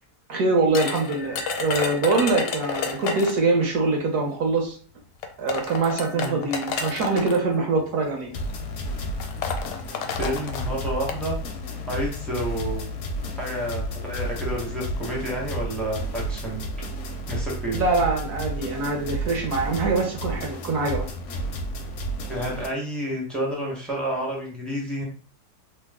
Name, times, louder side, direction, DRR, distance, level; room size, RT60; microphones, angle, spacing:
voice 1, 0.3-4.8 5.4-8.3 17.7-21.0, right 3 dB, 70° right, 0 dB, 1.1 m, -24 dB
sound 1, 0.7-3.5 4.6-4.7 5.2-7.4 8.3-8.5 8.8-8.9 9.2-11.2, left 6 dB, 85° left, 1.2 m, -30 dB
sound 2, 8.3-22.7, equal, 65° left, 0.7 m, -32 dB
voice 2, 10.2-11.4 11.9-12.8 13.4-16.6 17.3-17.8 22.3-25.0, right 1 dB, ahead, -3 dB, 0.4 m, -30 dB
2.9 x 2.0 x 3.5 m, 0.42 s
omnidirectional pair, 1.8 m